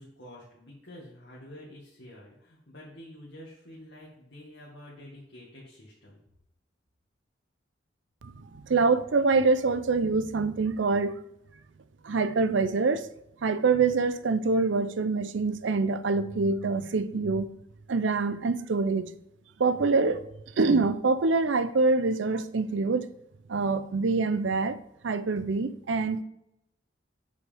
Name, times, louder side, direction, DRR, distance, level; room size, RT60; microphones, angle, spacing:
voice 1, 0.0-6.2, left 1 dB, 70° left, 2.0 m, -48 dB
voice 2, 8.2-11.1 12.0-13.1 13.4-17.5 17.9-19.1 19.6-20.3 20.6-23.1 23.5-24.8 25.0-26.2, right 4 dB, 80° right, 0.5 m, -25 dB
7.8 x 5.6 x 3.5 m
head